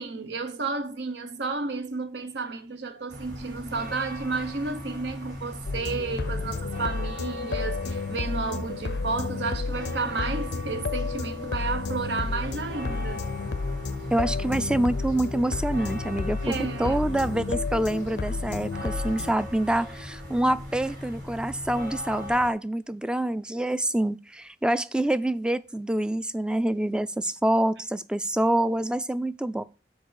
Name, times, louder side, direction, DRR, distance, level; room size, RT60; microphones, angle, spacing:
voice 1, 0.0-13.2 16.4-17.0, right 4 dB, 75° right, 0.9 m, -32 dB
sound 1, 3.1-22.5, left 1 dB, 90° right, 4.1 m, -39 dB
sound 2, 5.7-19.3, left 4 dB, 65° left, 0.5 m, -31 dB
voice 2, 14.1-29.6, right 1 dB, 5° right, 0.3 m, -26 dB
7.4 x 4.5 x 6.3 m
head